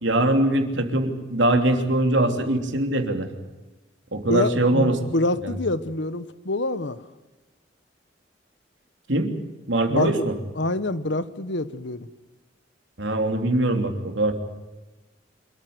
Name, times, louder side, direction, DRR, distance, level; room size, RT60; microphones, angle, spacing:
voice 1, 0.0-3.3 4.1-5.0 5.4-5.5 9.1-9.3 9.7-10.3 13.0-14.3, right 1 dB, 70° right, 5 dB, 3.2 m, -22 dB
voice 2, 4.3-7.0 9.9-10.2 10.6-12.1, left 2 dB, 65° left, 14 dB, 1.1 m, -26 dB
27.0 x 14.0 x 9.6 m, 1.1 s
head